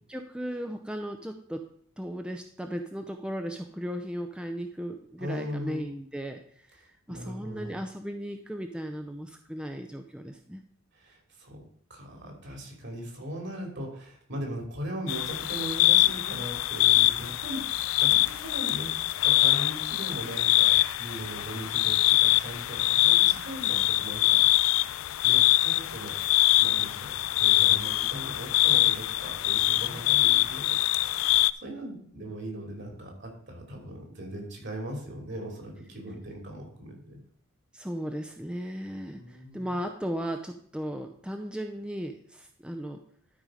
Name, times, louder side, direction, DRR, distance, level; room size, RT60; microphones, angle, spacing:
voice 1, 0.1-1.6 2.0-10.6 37.7-43.0, equal, 5° right, 4 dB, 0.5 m, -36 dB
voice 2, 5.2-5.9 7.1-7.7 10.9-11.6 11.9-24.7 25.2-26.2 26.6-30.9 31.3-37.2 39.1-39.7, right 1 dB, 55° right, 2 dB, 3.0 m, -39 dB
sound 1, 15.1-31.5, left 17 dB, 70° left, 0.3 m, -24 dB
12.0 x 5.4 x 5.0 m, 0.63 s
head